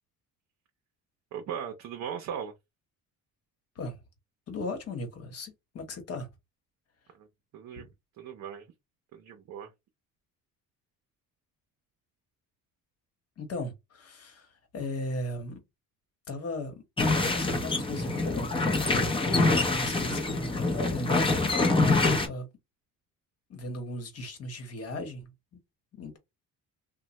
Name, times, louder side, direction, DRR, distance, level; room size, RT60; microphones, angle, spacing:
voice 1, 1.3-2.5 7.2-7.3 7.5-7.9 8.2-8.7 9.1-9.7, right 8 dB, 55° right, 0.6 m, -38 dB
voice 2, 4.5-6.3 7.8-7.9 13.4-15.6 16.3-16.8 17.2-18.6 18.9-19.2 19.5-21.9 22.2-22.5 23.5-25.3 25.9-26.2, left 1 dB, 45° left, 1.1 m, -37 dB
sound 1, 17.0-22.3, left 3 dB, 15° left, 0.6 m, -25 dB
3.2 x 2.2 x 2.9 m
cardioid pair, 140°, 34 cm